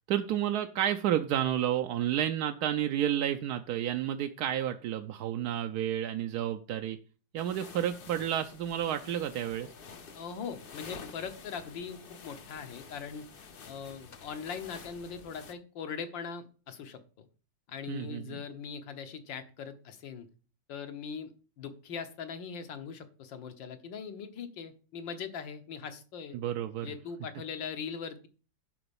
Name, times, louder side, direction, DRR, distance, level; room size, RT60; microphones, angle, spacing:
voice 1, 0.1-7.0 7.3-9.7 17.9-18.4 26.3-26.9, right 11 dB, 70° right, 6 dB, 1.0 m, -31 dB
sound 1, 7.4-15.5, left 5 dB, 55° left, 0.6 m, -49 dB
voice 2, 10.1-13.2 13.7-17.3 17.7-20.3 20.7-26.4 26.8-28.3, left 6 dB, 80° left, 8 dB, 1.8 m, -41 dB
11.0 x 4.0 x 7.0 m, 0.37 s
omnidirectional pair, 2.0 m